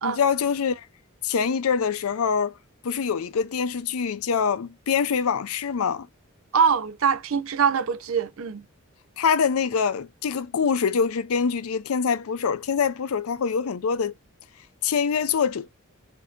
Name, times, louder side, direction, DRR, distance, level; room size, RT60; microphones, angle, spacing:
voice 1, 0.0-0.9 1.2-2.6 2.8-6.1 9.2-14.1 14.8-15.7, left 6 dB, 80° left, 0.5 m, -24 dB
voice 2, 6.5-8.6, right 6 dB, 70° right, 0.5 m, -23 dB
6.3 x 2.7 x 2.4 m
head